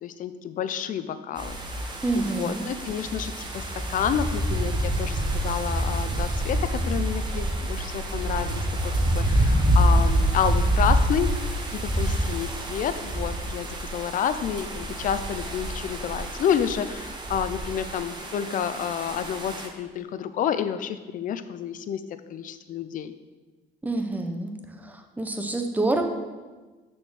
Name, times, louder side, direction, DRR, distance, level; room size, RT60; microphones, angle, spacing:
voice 1, 0.0-11.3 11.7-22.0 22.3-23.1, left 8 dB, 50° left, 11 dB, 0.5 m, -30 dB
sound 1, 1.4-19.7, right 1 dB, 25° right, 1.1 m, -27 dB
voice 2, 2.0-2.6 23.8-24.5 24.8-26.0, right 2 dB, 10° right, 5 dB, 0.8 m, -27 dB
6.3 x 4.4 x 6.3 m, 1.3 s
cardioid pair, 110°, 17 cm